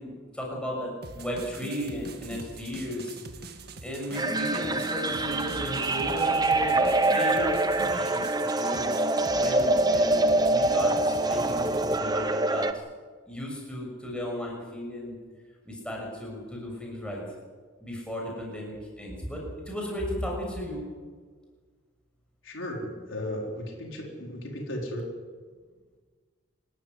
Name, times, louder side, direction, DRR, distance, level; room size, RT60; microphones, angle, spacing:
voice 1, 0.0-3.2 3.8-8.8 9.4-11.7 12.0-12.7 13.3-15.1 15.6-17.2 17.8-20.8, equal, 5° left, -1 dB, 6.9 m, -35 dB
sound 1, 1.0-12.0, right 2 dB, 50° right, 2.0 m, -44 dB
sound 2, 4.1-12.7, right 2 dB, 20° right, 1.0 m, -25 dB
voice 2, 22.4-25.0, left 1 dB, 70° left, 0 dB, 4.7 m, -35 dB
27.5 x 13.5 x 9.8 m, 1.5 s
head